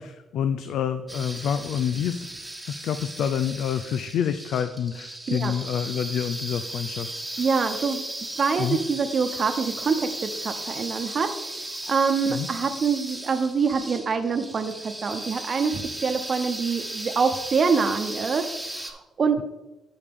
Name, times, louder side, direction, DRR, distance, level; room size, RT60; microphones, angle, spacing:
voice 1, 0.0-2.3 2.7-7.1 8.6-8.8 12.3-12.5, left 8 dB, 75° left, 10 dB, 0.4 m, -27 dB
sound 1, 1.1-18.9, right 1 dB, 5° right, 1.4 m, -36 dB
voice 2, 7.4-8.0 8.4-11.3 11.9-18.4 18.8-19.4, right 5 dB, 45° right, 7 dB, 0.9 m, -25 dB
12.0 x 5.0 x 3.7 m, 0.98 s
cardioid pair, 90°, 0 cm